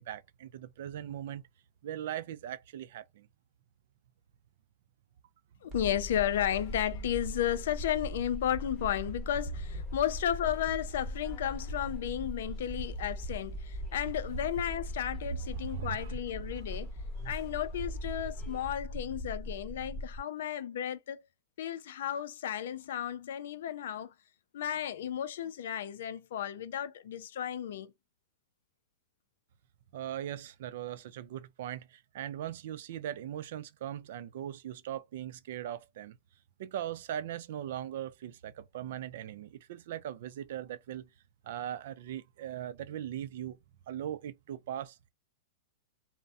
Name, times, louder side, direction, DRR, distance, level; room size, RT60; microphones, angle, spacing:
voice 1, 0.0-1.4 1.8-3.3 15.7-16.1 17.2-17.3 29.9-36.2 36.6-41.1 41.4-43.6 43.9-45.1, right 11 dB, 65° right, 0.3 m, -40 dB
voice 2, 5.6-16.9 17.2-21.2 21.6-24.1 24.5-27.9, left 10 dB, 75° left, 0.4 m, -33 dB
sound 1, 5.7-18.8, left 4 dB, 15° left, 0.8 m, -62 dB
sound 2, 5.7-20.2, equal, 25° right, 0.9 m, -39 dB
2.6 x 2.1 x 2.3 m
supercardioid pair, 150°, 0 cm